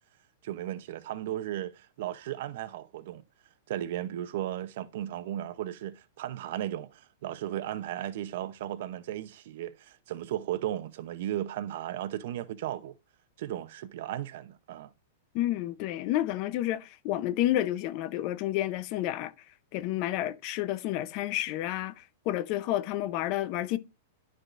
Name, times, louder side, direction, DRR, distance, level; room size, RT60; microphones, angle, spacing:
voice 1, 0.4-3.2 3.7-12.9 13.4-14.9, right 12 dB, 55° right, 0.7 m, -35 dB
voice 2, 15.3-19.3 19.7-23.8, left 14 dB, 35° left, 0.6 m, -30 dB
12.0 x 4.7 x 2.5 m
supercardioid pair, 165°, 0 cm